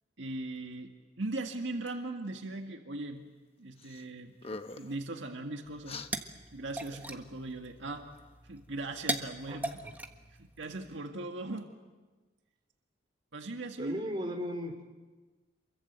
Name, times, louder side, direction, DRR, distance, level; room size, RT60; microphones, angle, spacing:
voice 1, 0.2-0.9 1.2-3.2 3.6-6.1 6.5-8.1 8.5-9.8 10.4-11.7 13.3-14.0, right 2 dB, 75° right, 4 dB, 1.8 m, -39 dB
sound 1, 3.8-4.0 4.3-5.0 5.8-6.1, left 3 dB, 30° left, 1.0 m, -42 dB
sound 2, 5.6-11.0, right 1 dB, 10° right, 1.4 m, -41 dB
voice 2, 13.8-14.8, equal, 25° right, 3 dB, 4.0 m, -36 dB
28.0 x 23.0 x 8.1 m, 1.3 s
head